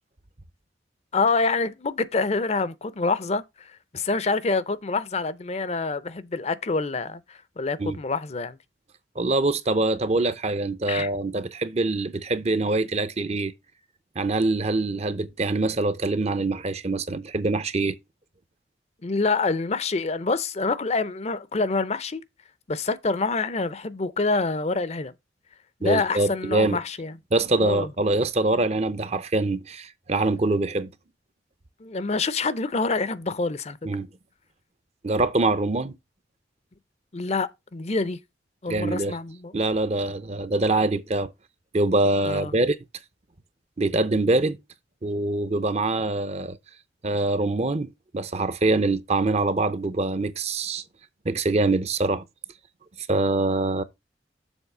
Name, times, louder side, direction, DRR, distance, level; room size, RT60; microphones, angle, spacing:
voice 1, 1.1-8.6 10.9-11.1 19.0-22.2 22.7-25.1 25.8-27.1 27.6-27.9 31.8-33.8 37.1-38.2 38.6-39.5 42.2-42.5, left 3 dB, 35° left, 0.6 m, -26 dB
voice 2, 9.2-13.5 14.2-18.0 25.8-26.8 27.3-30.9 33.8-34.1 35.0-36.0 38.7-39.2 39.5-41.3 41.7-42.8 43.8-44.6 45.0-46.6 47.0-50.8 51.2-52.2 53.1-53.8, right 2 dB, 35° right, 0.6 m, -24 dB
7.2 x 3.9 x 6.6 m
head